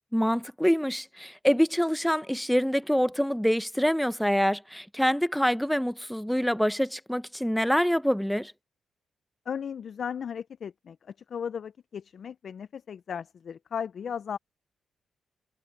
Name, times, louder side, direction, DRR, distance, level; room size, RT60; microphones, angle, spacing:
voice 1, 0.1-8.5, equal, 5° left, 1.1 m, -25 dB
voice 2, 9.5-14.4, left 7 dB, 65° left, 0.8 m, -36 dB
hypercardioid pair, 45°, 0 cm